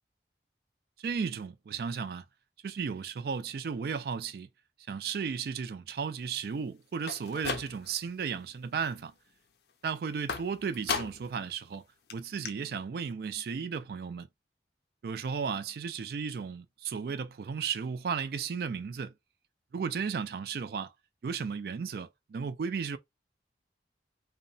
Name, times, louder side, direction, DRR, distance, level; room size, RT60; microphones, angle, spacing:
voice 1, 1.0-2.2 2.6-4.5 4.9-9.1 9.8-11.8 12.1-14.3 15.0-19.1 19.7-20.9 21.2-23.0, right 6 dB, 55° right, 0.3 m, -34 dB
sound 1, 7.0-8.1 8.5-9.0 10.3-11.4 11.7-11.8 12.1-12.2 12.4-12.5, left 5 dB, 60° left, 0.4 m, -36 dB
2.8 x 2.1 x 2.6 m
head